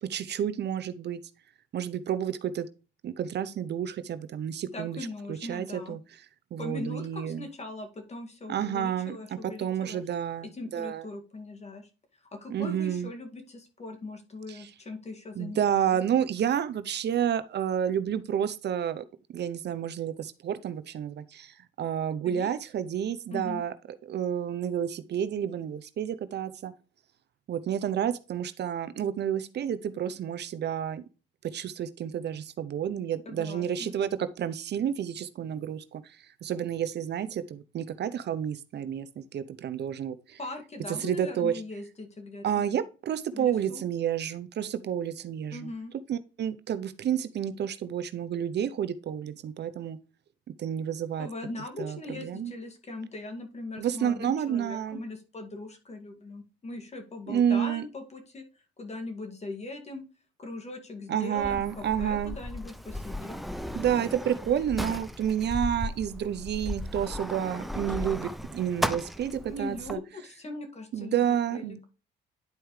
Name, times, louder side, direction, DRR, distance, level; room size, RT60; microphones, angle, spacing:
voice 1, 0.0-1.2 1.7-2.7 3.0-5.0 5.3-6.0 6.5-7.5 8.5-9.2 9.6-11.0 12.5-13.1 14.5-14.7 15.4-19.0 19.3-23.7 24.0-26.7 27.5-31.0 31.5-36.0 36.4-40.4 41.0-41.6 42.4-45.7 46.1-50.0 50.6-51.3 51.8-52.5 53.8-55.0 57.3-57.8 61.1-62.4 63.7-70.0 70.9-71.8, right 9 dB, 60° right, 0.7 m, -30 dB
voice 2, 4.7-6.0 6.6-10.0 10.4-11.9 12.3-15.8 22.2-22.5 23.3-23.6 33.3-33.9 40.4-42.6 43.3-43.8 45.5-45.9 51.2-58.5 58.8-60.1 60.4-63.4 69.5-71.3 71.5-71.8, left 2 dB, 35° left, 2.1 m, -40 dB
Sliding door, 61.4-69.9, left 1 dB, ahead, 0.6 m, -36 dB
10.5 x 4.6 x 3.2 m
cardioid pair, 90°, 20 cm